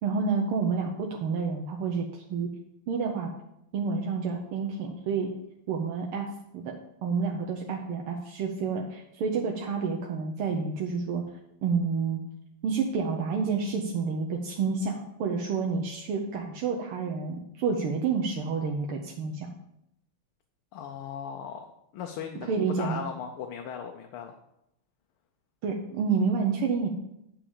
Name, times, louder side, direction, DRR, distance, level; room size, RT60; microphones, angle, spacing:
voice 1, 0.0-2.5 2.9-3.3 3.7-5.3 5.7-11.2 11.6-12.2 12.6-19.5 22.4-23.0 25.6-26.9, right 5 dB, 85° right, 1 dB, 1.8 m, -29 dB
voice 2, 20.7-21.7 21.9-24.4, left 7 dB, 85° left, 3 dB, 1.7 m, -38 dB
9.0 x 4.9 x 7.0 m, 0.81 s
omnidirectional pair, 2.3 m